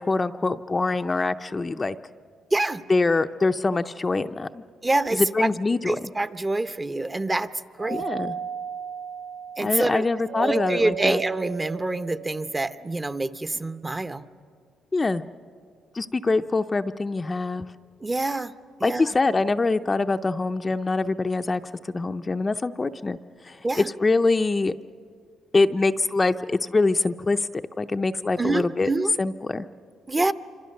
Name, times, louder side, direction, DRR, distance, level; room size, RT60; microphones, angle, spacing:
voice 1, 0.0-2.0 2.9-4.6 5.1-6.1 7.9-8.4 9.6-11.2 14.9-15.2 15.9-17.7 18.8-21.6 21.9-23.2 23.4-24.7 25.5-28.9 29.2-29.7, left 3 dB, 25° left, 8 dB, 0.6 m, -24 dB
voice 2, 2.5-2.8 4.8-5.5 5.9-7.5 7.8-8.1 9.6-10.0 10.4-14.2 18.0-18.5 18.8-19.0 23.6-23.9 28.4-29.1 30.1-30.3, right 2 dB, 20° right, 12 dB, 0.8 m, -26 dB
Doorbell, 7.8-12.6, right 8 dB, 85° right, 0.6 m, -35 dB
27.0 x 25.5 x 6.6 m, 2.2 s
cardioid pair, 90°, 0 cm